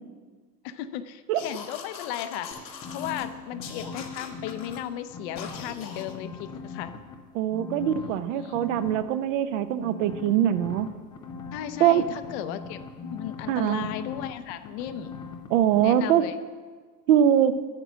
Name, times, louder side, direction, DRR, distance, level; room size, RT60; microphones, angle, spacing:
voice 1, 0.6-7.0 7.9-8.6 11.5-15.2 15.8-16.3, left 11 dB, 40° left, 10 dB, 0.6 m, -36 dB
sound 1, 1.3-3.3 3.6-4.8 5.4-6.1, left 6 dB, 80° left, 1.7 m, -41 dB
sound 2, 2.5-4.8 5.1-7.1 7.5-9.0 9.8-15.5 15.7-15.9, left 5 dB, 10° left, 0.3 m, -40 dB
voice 2, 7.3-10.9 11.8-12.0 13.5-13.9 15.5-16.2 17.1-17.5, right 10 dB, 50° right, 12 dB, 0.7 m, -22 dB
9.0 x 8.0 x 6.2 m, 1.5 s
hypercardioid pair, 105°, 50 cm